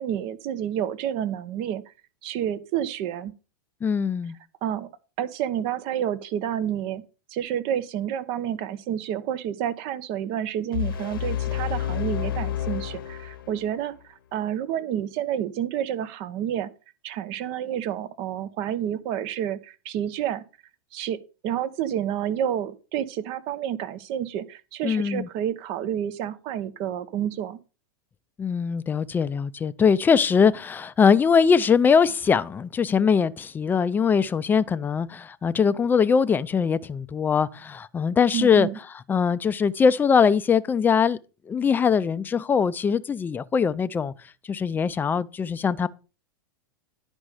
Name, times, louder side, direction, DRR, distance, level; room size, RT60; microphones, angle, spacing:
voice 1, 0.0-1.8 2.2-3.3 4.6-4.9 5.2-7.0 7.3-16.7 17.0-20.4 20.9-21.2 21.4-27.6 38.3-38.8, right 10 dB, 50° right, 0.9 m, -29 dB
voice 2, 3.8-4.3 24.8-25.3 28.4-38.7 39.1-41.2 41.5-44.1 44.5-45.9, left 6 dB, 15° left, 0.5 m, -21 dB
sound 1, 10.7-13.8, left 11 dB, 75° left, 1.0 m, -29 dB
10.5 x 5.3 x 4.9 m
hypercardioid pair, 115°, 12 cm